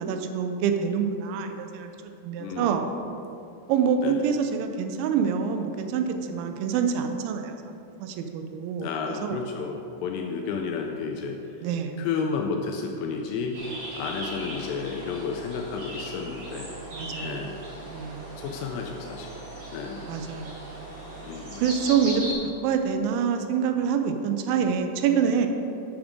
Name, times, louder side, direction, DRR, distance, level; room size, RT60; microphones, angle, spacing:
voice 1, 0.0-2.8 3.7-7.7 8.0-9.4 11.6-12.0 16.9-17.3 17.9-18.3 20.0-20.6 21.6-25.5, right 6 dB, 85° right, 6 dB, 3.0 m, -26 dB
voice 2, 2.4-2.9 4.0-4.2 8.8-11.6 12.0-13.6 14.0-16.7 17.2-17.6 18.4-19.3 19.7-20.1 21.2-21.6, left 5 dB, 85° left, 2 dB, 2.5 m, -32 dB
sound 1, 13.5-22.3, right 1 dB, 45° right, 2.2 m, -38 dB
7.3 x 7.1 x 5.1 m, 2.8 s
omnidirectional pair, 5.3 m